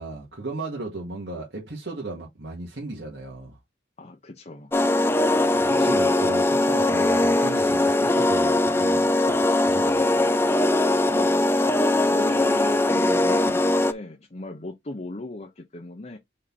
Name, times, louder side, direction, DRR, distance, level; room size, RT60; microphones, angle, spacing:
voice 1, 0.0-3.6 5.5-10.0, right 2 dB, 75° right, 2.2 m, -36 dB
voice 2, 4.0-4.7 11.1-11.6 12.1-16.2, left 2 dB, 40° left, 0.9 m, -37 dB
sound 1, 4.7-13.9, left 2 dB, 15° left, 0.5 m, -21 dB
5.4 x 4.2 x 4.3 m
head